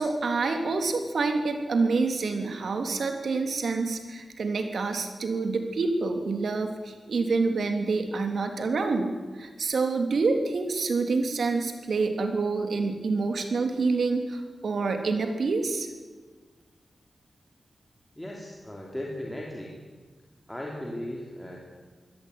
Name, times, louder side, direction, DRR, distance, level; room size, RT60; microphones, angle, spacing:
voice 1, 0.0-15.9, right 4 dB, 65° right, 6 dB, 3.1 m, -27 dB
voice 2, 18.2-19.8 20.5-21.6, left 1 dB, 5° left, -2 dB, 3.3 m, -37 dB
24.0 x 17.0 x 9.4 m, 1.4 s
wide cardioid pair, 175°, 0 cm